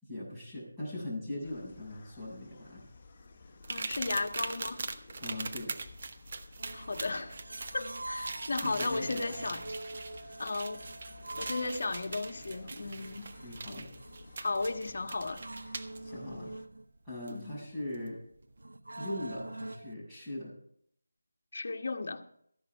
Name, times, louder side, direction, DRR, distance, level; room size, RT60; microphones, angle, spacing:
voice 1, 0.0-2.8 5.2-5.8 8.6-9.5 13.4-13.9 16.0-16.5 17.0-18.2 19.0-20.5, left 1 dB, 10° right, 7.3 m, -40 dB
sound 1, 1.4-16.7, left 3 dB, 30° left, 1.7 m, -54 dB
sound 2, 3.6-16.0 17.3-17.4 17.9-18.1, right 4 dB, 40° right, 1.0 m, -42 dB
voice 2, 3.7-4.9 6.7-7.4 7.7-9.6 10.4-10.8 11.4-13.3 14.4-15.4 17.3-17.6 21.5-22.2, left 3 dB, 55° left, 1.5 m, -35 dB
sound 3, 6.6-19.9, right 2 dB, 80° right, 0.7 m, -46 dB
14.5 x 11.0 x 4.7 m
figure-of-eight pair, 165°, 0 cm